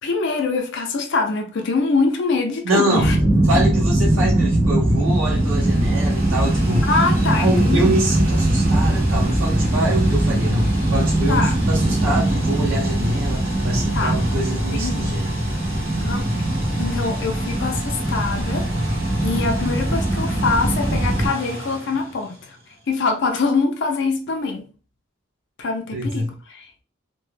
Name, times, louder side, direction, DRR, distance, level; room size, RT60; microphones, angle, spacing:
voice 1, 0.0-3.2 6.9-8.0 11.3-11.5 13.9-14.2 14.7-15.2 16.0-16.3 16.8-22.6 22.9-24.7 25.6-26.8, left 4 dB, 60° left, 0.5 m, -24 dB
voice 2, 2.6-3.1 3.5-15.4 25.9-26.3, right 1 dB, 80° right, 0.6 m, -25 dB
sound 1, 2.9-21.3, right 1 dB, 15° right, 0.4 m, -21 dB
sound 2, 4.7-22.8, equal, 45° right, 1.1 m, -32 dB
2.1 x 2.1 x 3.1 m
head